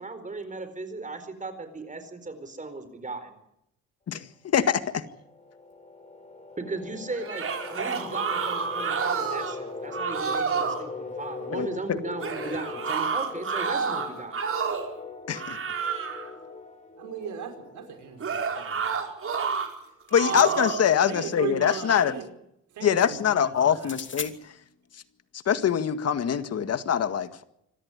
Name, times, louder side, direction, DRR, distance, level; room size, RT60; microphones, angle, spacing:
voice 1, 0.0-3.3 6.6-14.4, right 3 dB, 25° right, 10 dB, 4.4 m, -37 dB
voice 2, 4.5-5.0 11.5-12.0 15.3-15.6 20.1-22.1 22.8-24.3 25.5-27.4, left 8 dB, 55° left, 11 dB, 1.9 m, -24 dB
sound 1, 4.9-19.3, left 4 dB, 25° left, 5.2 m, -41 dB
sound 2, 7.2-9.6 9.9-10.8 12.2-14.9 15.3-16.3 18.2-19.7 20.1-20.9, right 6 dB, 45° right, 4.9 m, -29 dB
voice 3, 17.0-19.0 20.2-20.4 21.1-22.3 22.7-24.0, right 7 dB, 75° right, 5 dB, 5.1 m, -37 dB
sound 3, 19.7-21.0 23.7-24.3, left 6 dB, 40° left, 2.9 m, -40 dB
26.0 x 13.5 x 9.9 m, 0.79 s
cardioid pair, 90°, 30 cm